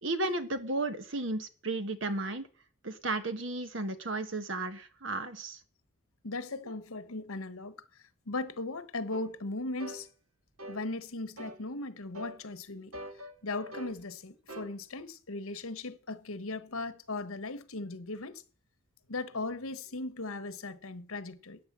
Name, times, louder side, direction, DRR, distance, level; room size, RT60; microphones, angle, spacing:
voice 1, 0.0-2.5 2.8-5.6, right 2 dB, 60° right, 1.4 m, -34 dB
voice 2, 6.2-7.7 8.3-10.1 10.7-12.9 13.4-18.4 19.1-21.6, left 2 dB, 85° left, 1.3 m, -38 dB
sound 1, 9.1-9.3 9.8-10.0 10.6-10.8 11.4-11.6 12.1-12.4 12.9-14.0 14.5-14.7, equal, 85° right, 1.5 m, -43 dB
13.5 x 9.1 x 7.4 m
head